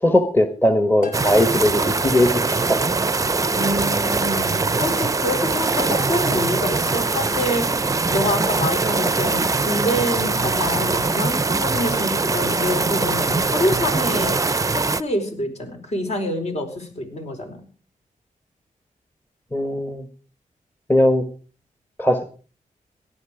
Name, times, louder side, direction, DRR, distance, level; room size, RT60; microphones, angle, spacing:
voice 1, 0.0-2.8 19.5-20.1 20.9-21.2 22.0-22.2, left 1 dB, 15° left, 8 dB, 1.4 m, -19 dB
sound 1, 1.0-3.0 3.7-5.1 5.8-7.0 7.8-9.2 9.8-11.1, left 3 dB, 80° left, 5.1 m, -38 dB
sound 2, 1.1-15.0, right 3 dB, 25° right, 0.6 m, -22 dB
voice 2, 3.6-4.5 4.8-7.7 8.1-17.6, left 1 dB, 50° left, 4 dB, 4.6 m, -26 dB
17.5 x 11.5 x 5.0 m, 0.41 s
wide cardioid pair, 100°, 14 cm